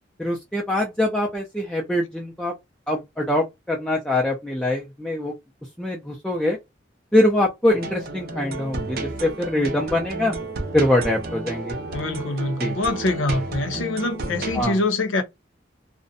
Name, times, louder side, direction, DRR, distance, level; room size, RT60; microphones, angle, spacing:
voice 1, 0.2-2.5 2.9-5.3 5.8-6.6 7.1-10.4 10.7-11.8 12.6-12.7 14.6-14.8, left 1 dB, 5° left, 0.4 m, -23 dB
sound 1, 7.7-14.6, right 2 dB, 50° right, 0.6 m, -32 dB
voice 2, 11.9-15.2, left 2 dB, 85° left, 0.6 m, -24 dB
2.5 x 2.1 x 2.5 m
head